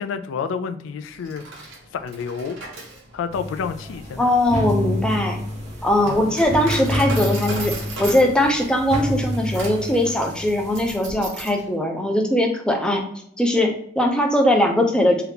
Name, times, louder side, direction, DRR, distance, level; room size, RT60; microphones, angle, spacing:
voice 1, 0.0-1.4 1.9-2.6 3.1-4.3 6.0-6.3, left 6 dB, 85° left, 9 dB, 0.3 m, -29 dB
Coin (dropping), 1.1-11.6, right 2 dB, 80° right, 1.1 m, -37 dB
sound 1, 3.3-11.0, left 1 dB, 35° right, 0.7 m, -28 dB
voice 2, 4.2-5.4 5.8-13.0 13.4-15.2, left 1 dB, 5° left, 2 dB, 0.4 m, -20 dB
2.8 x 2.4 x 3.4 m, 0.69 s
head